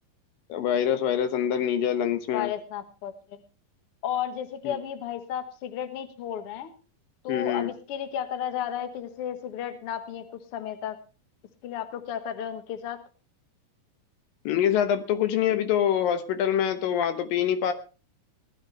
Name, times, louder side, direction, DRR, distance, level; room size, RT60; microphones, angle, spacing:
voice 1, 0.5-2.5 4.6-4.8 7.3-7.7 14.5-17.7, left 9 dB, 80° left, 9 dB, 2.8 m, -25 dB
voice 2, 2.3-3.4 4.0-6.7 7.2-10.2 10.5-11.0 11.6-13.0, left 9 dB, 60° left, 8 dB, 1.6 m, -33 dB
18.5 x 12.0 x 3.3 m, 0.34 s
omnidirectional pair, 4.0 m